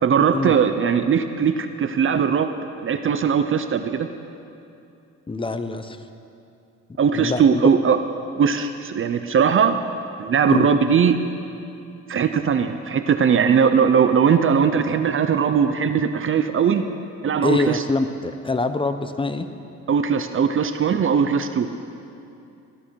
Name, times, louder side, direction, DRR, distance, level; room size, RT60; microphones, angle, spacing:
voice 1, 0.0-2.5 2.8-4.1 7.0-8.0 8.4-9.8 10.2-11.2 12.1-16.8 17.2-17.8 19.9-21.7, right 7 dB, 45° right, 9 dB, 0.6 m, -19 dB
voice 2, 5.3-6.0 7.1-7.7 10.5-10.7 17.4-19.5, left 3 dB, 15° left, 10 dB, 0.8 m, -24 dB
16.0 x 12.5 x 4.6 m, 2.7 s
cardioid pair, 90°, 30 cm